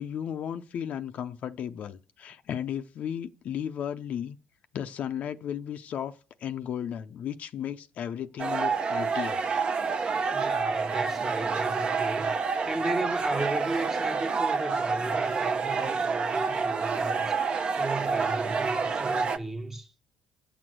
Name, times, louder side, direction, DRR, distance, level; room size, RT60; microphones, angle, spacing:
voice 1, 0.0-4.4 4.7-9.4, left 9 dB, 55° left, 0.5 m, -34 dB
sound 1, 8.4-19.4, right 5 dB, 35° right, 0.7 m, -28 dB
voice 2, 10.3-19.9, right 2 dB, 15° right, 0.9 m, -35 dB
8.5 x 6.1 x 7.7 m
cardioid pair, 120°, 3 cm